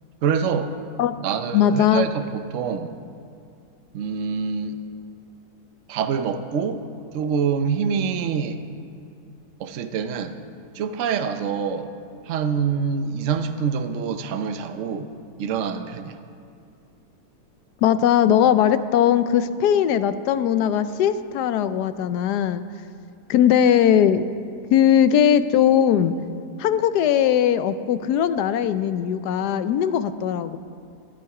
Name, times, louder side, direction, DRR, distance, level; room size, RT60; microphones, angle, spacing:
voice 1, 0.2-0.7 1.2-2.9 3.9-4.8 5.9-6.8 7.1-8.6 9.6-10.4 10.7-11.9 12.3-15.1 15.4-16.2, right 6 dB, 60° right, 8 dB, 1.0 m, -25 dB
voice 2, 1.5-2.1 17.8-22.6 23.3-24.4 24.7-26.1 26.6-30.6, left 9 dB, 85° left, 12 dB, 1.2 m, -19 dB
18.0 x 11.5 x 4.8 m, 2.4 s
omnidirectional pair, 1.7 m